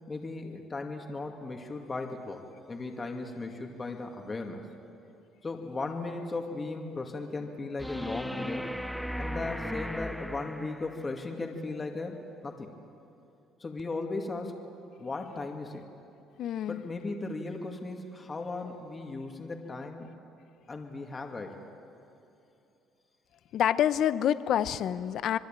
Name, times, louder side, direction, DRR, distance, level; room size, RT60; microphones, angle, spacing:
voice 1, 0.1-2.4 2.7-4.6 5.4-8.6 9.2-12.7 13.6-14.6 15.0-15.8 16.7-20.1 20.7-21.7, left 3 dB, 25° left, 3 dB, 2.4 m, -37 dB
sound 1, 7.8-11.1 13.8-13.9, equal, ahead, 0.5 m, -36 dB
voice 2, 16.4-16.8 23.5-25.4, left 10 dB, 60° left, 14 dB, 0.9 m, -27 dB
27.0 x 21.0 x 9.0 m, 2.7 s
cardioid pair, 105°, 0 cm